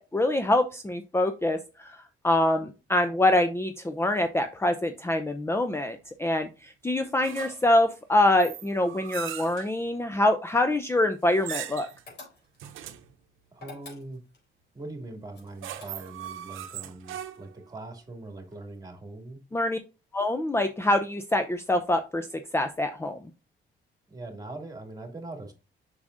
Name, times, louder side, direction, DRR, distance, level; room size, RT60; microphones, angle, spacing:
voice 1, 0.0-11.9 19.5-19.8 20.1-23.3, left 1 dB, 10° left, 8 dB, 0.6 m, -25 dB
sound 1, 7.2-7.8 8.4-9.7 11.3-12.0 12.6-13.1 15.3-17.6, right 11 dB, 85° right, 0.8 m, -39 dB
sound 2, 12.1-12.7 13.5-14.4 15.3-16.3, left 3 dB, 55° left, 3.9 m, -47 dB
voice 2, 13.5-14.2 14.7-19.4 24.1-25.5, right 2 dB, 20° right, 4 dB, 2.5 m, -41 dB
7.0 x 6.3 x 2.6 m, 0.31 s
cardioid pair, 90°, 20 cm